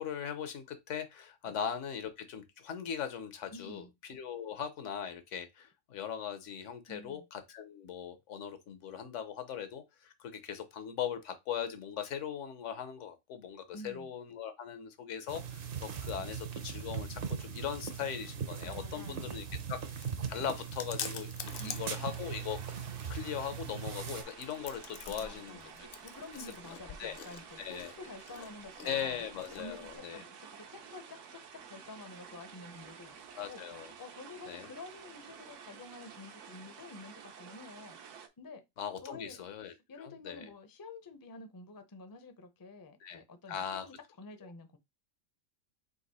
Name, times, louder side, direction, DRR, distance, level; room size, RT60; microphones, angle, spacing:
voice 1, 0.0-19.8 20.3-21.3 21.6-22.6 23.1-25.9 27.0-27.2 27.6-27.9 28.8-30.2 33.3-33.9 34.5-34.7 38.8-40.5 43.0-43.2 43.5-43.8, left 8 dB, 75° left, 1.1 m, -39 dB
voice 2, 3.5-3.9 6.9-7.3 13.7-14.1 18.6-19.6 21.6-22.1 25.1-29.2 29.6-33.2 33.5-33.6 34.0-38.0 38.4-38.6 39.0-39.4 39.9-44.8, left 2 dB, 30° left, 0.4 m, -49 dB
sound 1, 15.3-24.2, right 7 dB, 55° right, 0.8 m, -40 dB
Chewing mastication, 19.3-30.0, left 7 dB, 60° left, 0.7 m, -48 dB
sound 2, 21.4-38.3, right 7 dB, 75° right, 1.0 m, -51 dB
3.9 x 2.9 x 4.0 m
omnidirectional pair, 1.3 m